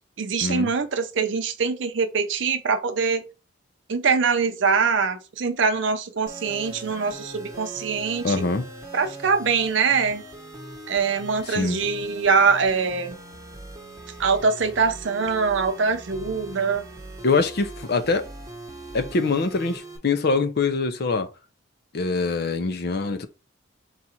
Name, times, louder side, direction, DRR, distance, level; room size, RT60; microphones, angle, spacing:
voice 1, 0.2-3.2 3.9-8.4 8.9-10.2 10.9-13.2 14.2-16.8, right 5 dB, 65° right, 0.6 m, -23 dB
sound 1, 6.3-20.0, right 1 dB, 15° right, 1.0 m, -41 dB
voice 2, 8.2-8.7 11.5-11.8 17.2-18.3 18.9-21.3 21.9-23.3, left 4 dB, 50° left, 0.5 m, -24 dB
4.0 x 2.4 x 4.3 m
head